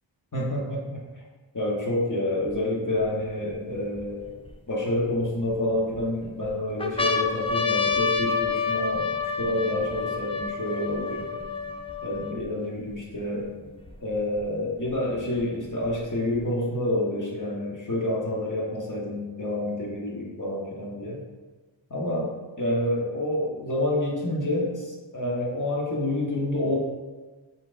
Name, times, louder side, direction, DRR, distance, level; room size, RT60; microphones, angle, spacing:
voice 1, 0.3-1.0 1.5-4.3 4.7-11.4 12.0-13.5 14.0-21.2 21.9-22.3 22.6-26.8, left 1 dB, 40° left, -3 dB, 1.1 m, -28 dB
sound 1, 2.5-2.6 3.2-4.5 5.2-6.0 6.4-6.5 6.8-12.4 13.1-13.2 13.4-14.4 15.4-16.4, left 4 dB, 15° left, 0.3 m, -28 dB
4.3 x 3.7 x 2.5 m, 1.3 s
wide cardioid pair, 40°, 48 cm